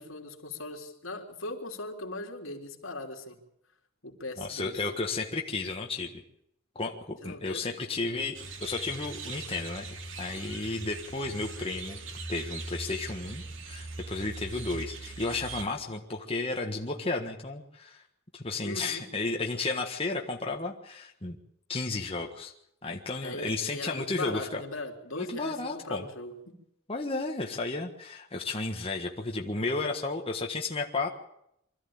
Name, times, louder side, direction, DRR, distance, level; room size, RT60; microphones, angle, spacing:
voice 1, 0.0-3.4 4.0-4.8 7.2-7.7 18.6-19.0 23.2-26.6, left 2 dB, 70° left, 2 dB, 3.6 m, -39 dB
voice 2, 4.4-6.1 6.7-9.9 10.2-12.0 12.3-18.0 18.3-21.4 21.7-22.5 22.8-24.6 25.2-26.0 26.9-31.1, left 3 dB, 30° left, 1 dB, 1.6 m, -33 dB
sound 1, 8.3-15.6, right 3 dB, 65° right, 2.7 m, -40 dB
25.0 x 14.0 x 8.8 m, 0.78 s
head